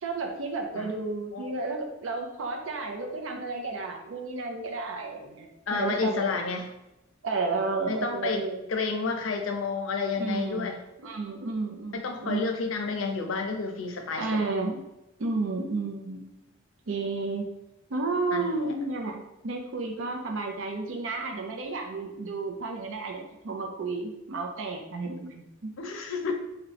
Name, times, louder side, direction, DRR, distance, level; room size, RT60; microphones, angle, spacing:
voice 1, 0.0-6.5 7.2-8.6 10.2-12.6 14.2-14.8 15.2-16.4 16.9-17.4 17.9-25.7, right 3 dB, 75° right, 3 dB, 0.5 m, -32 dB
voice 2, 5.7-6.7 7.9-8.4 8.7-10.8 11.9-14.3 18.3-18.7 25.8-26.3, left 4 dB, 85° left, 4 dB, 0.5 m, -30 dB
2.9 x 2.2 x 3.9 m, 0.91 s
head